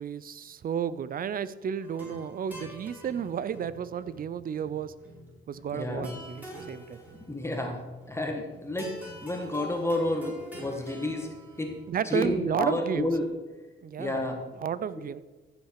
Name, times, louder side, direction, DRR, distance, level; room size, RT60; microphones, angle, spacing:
voice 1, 0.0-4.9 5.5-7.0 11.9-13.1 13.8-14.2 14.6-15.2, right 8 dB, 45° right, 16 dB, 0.6 m, -32 dB
sound 1, 1.8-11.9, equal, 10° right, 4.2 m, -46 dB
voice 2, 5.7-6.1 7.3-8.9 9.2-11.3 11.6-11.7 12.0-13.3 14.0-14.4, left 1 dB, 15° left, 2 dB, 1.7 m, -30 dB
15.0 x 6.5 x 4.8 m, 1.2 s
cardioid pair, 90°, 20 cm